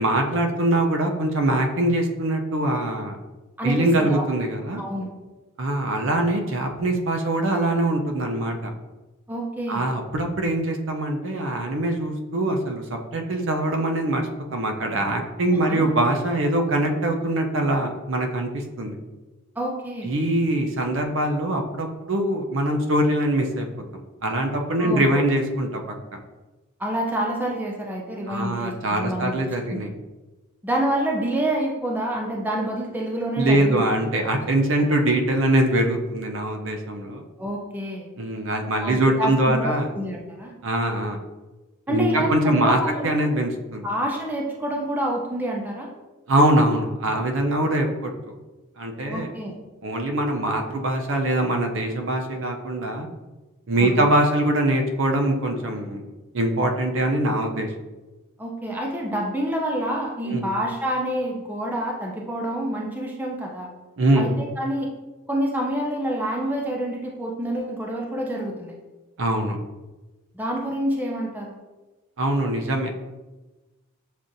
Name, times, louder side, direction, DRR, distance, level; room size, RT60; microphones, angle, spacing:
voice 1, 0.0-3.2 3.6-4.8 5.6-8.7 9.7-18.5 18.8-19.0 20.0-23.7 24.2-25.8 26.1-26.2 28.3-29.9 33.4-37.2 38.2-39.9 40.6-41.2 41.9-43.9 46.3-48.1 48.8-49.3 49.8-53.1 53.7-57.7 60.2-60.5 64.0-64.3 69.2-69.6 72.2-72.9, right 1 dB, 60° right, 3 dB, 0.5 m, -23 dB
voice 2, 3.6-4.3 4.8-5.1 9.3-9.9 15.5-15.8 19.6-20.1 24.8-25.2 26.8-29.8 30.6-33.8 37.4-38.1 38.8-40.5 41.9-43.3 43.8-45.9 49.1-49.5 53.8-54.1 58.4-63.7 64.1-64.9 65.3-68.7 70.3-71.6, right 1 dB, 10° right, -1 dB, 0.4 m, -27 dB
7.1 x 2.5 x 2.6 m, 1.2 s
head